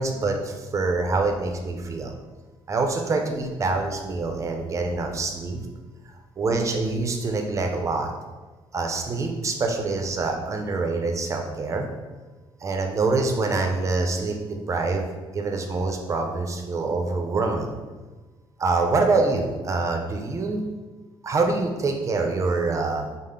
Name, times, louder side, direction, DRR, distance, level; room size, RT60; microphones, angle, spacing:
voice 1, 0.0-2.1 2.7-5.6 6.4-8.1 8.7-11.9 12.6-15.1 15.3-17.7 18.6-20.6 21.2-23.0, right 3 dB, 35° right, 3 dB, 0.6 m, -25 dB
5.4 x 2.0 x 3.6 m, 1.3 s
cardioid pair, 125°, 9 cm